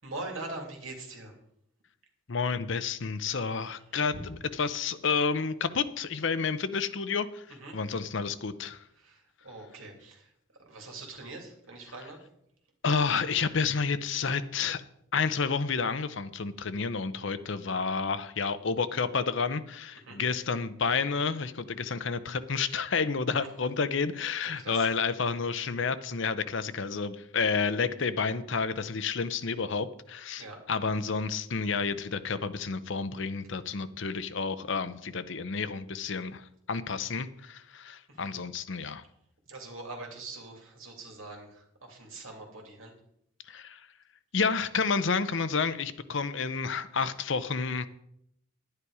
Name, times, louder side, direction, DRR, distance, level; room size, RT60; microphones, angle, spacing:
voice 1, 0.0-1.3 4.1-4.2 7.5-7.7 8.9-10.3 10.6-12.2 20.0-20.2 24.4-24.9 30.4-30.6 38.1-38.3 39.5-42.9, right 2 dB, 75° right, 1 dB, 2.8 m, -43 dB
voice 2, 2.3-7.4 7.7-8.8 12.8-14.8 15.1-39.0 43.5-43.8 44.3-47.9, left 5 dB, 60° left, 13 dB, 0.7 m, -30 dB
11.0 x 9.8 x 4.8 m, 0.74 s
head